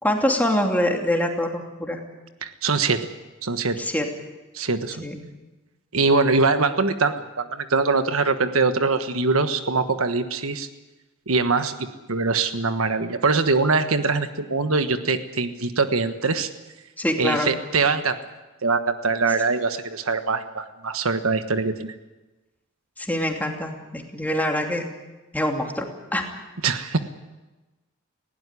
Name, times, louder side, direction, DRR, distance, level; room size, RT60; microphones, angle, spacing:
voice 1, 0.0-2.0 3.8-4.0 5.0-5.2 17.0-17.5 23.0-24.9 25.3-25.9 26.1-26.2, left 1 dB, 10° left, 2 dB, 2.8 m, -24 dB
voice 2, 2.4-3.1 3.4-3.8 4.5-5.0 5.9-10.7 11.3-11.7 12.1-16.5 17.2-18.2 18.6-21.9 26.6-27.0, right 4 dB, 85° right, 9 dB, 1.4 m, -23 dB
19.5 x 17.0 x 9.9 m, 1.1 s
head